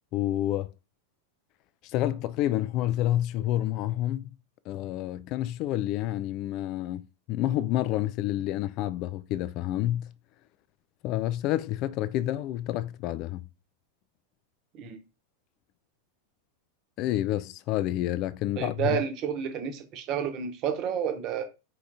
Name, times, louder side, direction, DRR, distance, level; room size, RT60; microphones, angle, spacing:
voice 1, 0.1-0.7 1.9-4.3 4.7-10.1 11.0-13.4 17.0-19.0, left 14 dB, 40° left, 0.3 m, -29 dB
voice 2, 18.6-21.4, right 8 dB, 35° right, 1.0 m, -30 dB
4.7 x 3.3 x 2.6 m
figure-of-eight pair, 90°, 0 cm